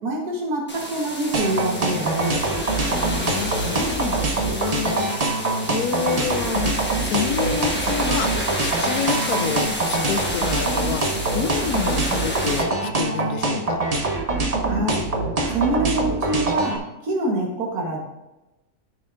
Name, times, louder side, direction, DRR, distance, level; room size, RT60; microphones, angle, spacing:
voice 1, 0.0-2.6 14.6-15.1 15.5-16.8 17.0-18.0, right 2 dB, 85° right, -1 dB, 1.8 m, -25 dB
sound 1, 0.7-12.6, left 1 dB, 10° left, 1.1 m, -30 dB
sound 2, 1.3-16.8, right 3 dB, 35° right, 0.7 m, -24 dB
voice 2, 2.9-6.7 7.0-8.3 8.6-11.0 11.3-13.8, left 7 dB, 80° left, 8 dB, 1.2 m, -28 dB
12.5 x 5.7 x 2.5 m, 0.99 s
omnidirectional pair, 1.6 m